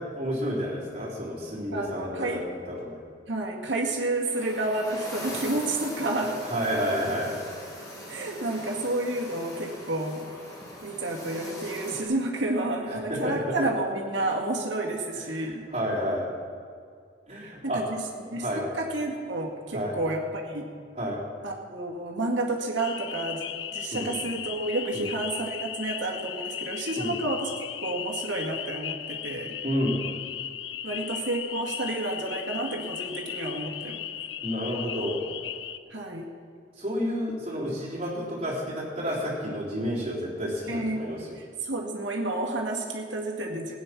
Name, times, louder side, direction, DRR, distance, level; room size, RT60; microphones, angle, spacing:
voice 1, 0.0-3.0 6.4-7.4 12.8-13.6 15.1-16.3 17.3-17.8 18.3-18.6 19.7-20.0 21.0-21.2 23.9-24.2 24.9-25.1 26.9-27.1 29.6-30.0 34.4-35.2 36.8-41.4, equal, 30° right, -7 dB, 3.6 m, -30 dB
voice 2, 1.7-2.4 3.3-6.3 8.1-10.3 10.8-15.6 17.7-18.0 18.3-20.6 21.4-23.4 23.7-27.5 27.8-29.6 30.8-34.1 35.9-36.3 40.7-43.7, right 2 dB, 75° right, 0 dB, 2.0 m, -30 dB
sound 1, 4.3-12.0, equal, 20° left, 2.4 m, -41 dB
sound 2, 22.8-35.8, left 10 dB, 75° left, 0.6 m, -36 dB
16.5 x 9.4 x 6.0 m, 2.2 s
head